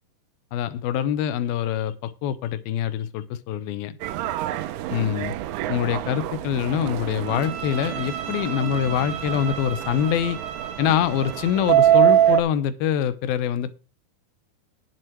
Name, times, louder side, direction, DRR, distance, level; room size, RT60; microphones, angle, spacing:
voice 1, 0.5-3.9 4.9-5.3 5.7-10.4 10.8-13.7, left 9 dB, 75° left, 2.6 m, -25 dB
Subway metro underground, 4.0-12.4, right 12 dB, 90° right, 2.8 m, -24 dB
Bowed string instrument, 7.2-12.1, right 8 dB, 60° right, 2.9 m, -35 dB
10.5 x 7.4 x 4.6 m
omnidirectional pair, 4.5 m